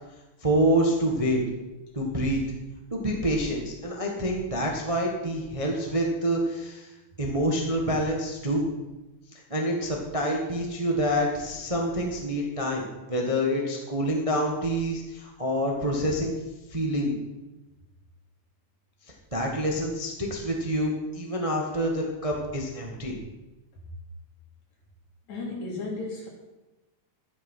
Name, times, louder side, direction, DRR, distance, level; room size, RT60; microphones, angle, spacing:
voice 1, 0.4-1.4 1.9-2.4 2.9-6.9 7.2-8.7 9.5-16.3 16.7-17.1 19.3-23.2, equal, 20° right, 0 dB, 0.9 m, -27 dB
voice 2, 25.3-26.3, left 3 dB, 55° left, -1 dB, 4.3 m, -34 dB
12.0 x 10.5 x 5.7 m, 1.1 s
omnidirectional pair, 3.9 m